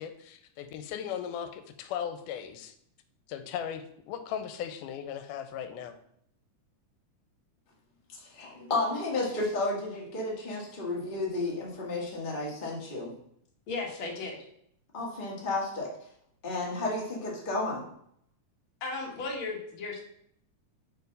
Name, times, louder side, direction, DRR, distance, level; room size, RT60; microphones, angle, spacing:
voice 1, 0.0-2.7 3.3-6.0, left 9 dB, 90° left, 9 dB, 2.1 m, -37 dB
voice 2, 8.2-13.1 14.9-15.9 16.4-17.8, left 2 dB, 35° left, -3 dB, 0.7 m, -32 dB
voice 3, 13.7-14.4 18.8-20.0, left 3 dB, 50° left, -1 dB, 1.7 m, -35 dB
4.7 x 4.6 x 5.3 m, 0.70 s
omnidirectional pair, 3.6 m